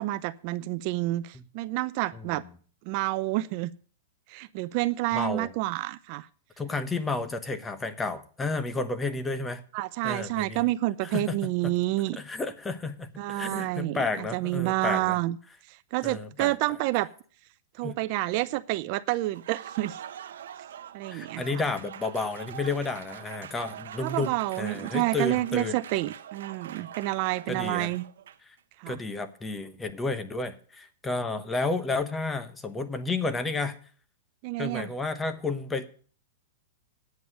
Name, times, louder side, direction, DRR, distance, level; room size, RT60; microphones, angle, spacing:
voice 1, 0.0-2.4 2.9-3.7 4.3-6.3 9.7-12.2 13.2-14.0 14.3-15.4 15.9-17.1 17.8-20.0 20.9-21.4 24.0-28.0 28.8-29.0 34.4-34.9, right 18 dB, 45° right, 14 dB, 0.4 m, -29 dB
voice 2, 2.1-2.5 5.1-5.5 6.6-9.6 10.0-10.7 11.0-11.4 11.6-11.7 12.1-15.2 16.0-16.5 17.8-18.0 21.1-25.8 27.5-27.9 28.4-28.5 28.9-33.8 34.6-35.9, left 3 dB, 10° left, 11 dB, 1.0 m, -31 dB
Applause, 19.2-28.6, right 10 dB, 75° right, 0.9 m, -44 dB
9.4 x 8.1 x 6.6 m, 0.43 s
hypercardioid pair, 140°, 0 cm